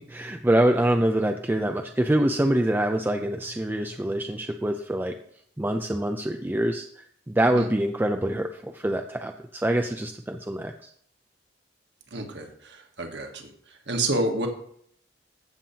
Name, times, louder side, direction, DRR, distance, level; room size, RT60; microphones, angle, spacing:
voice 1, 0.1-5.1 5.6-6.9 7.3-10.9, right 1 dB, 10° right, 5 dB, 0.4 m, -25 dB
voice 2, 12.1-13.5 13.9-14.5, right 2 dB, 65° right, 3 dB, 1.5 m, -29 dB
15.0 x 7.2 x 2.8 m, 0.65 s
head